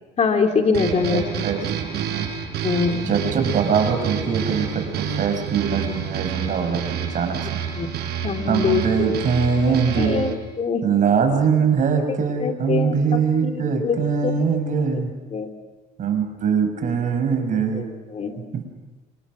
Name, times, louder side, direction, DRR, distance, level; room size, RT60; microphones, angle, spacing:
voice 1, 0.2-1.5 2.6-3.2 7.8-7.9 8.2-9.1 9.9-10.3 10.6-10.8 12.4-14.0 14.2-14.6 14.9-15.0 15.3-15.5 17.7-17.8 18.1-18.4, left 5 dB, 40° left, 4 dB, 2.9 m, -23 dB
sound 1, 0.7-10.3, right 8 dB, 75° right, 5.8 m, -29 dB
voice 2, 1.1-2.3 3.1-7.5 8.5-10.3 10.8-15.1 16.0-17.9 18.5-18.6, right 6 dB, 50° right, 6 dB, 5.7 m, -22 dB
30.0 x 26.5 x 6.3 m, 1.3 s
cardioid pair, 110°, 17 cm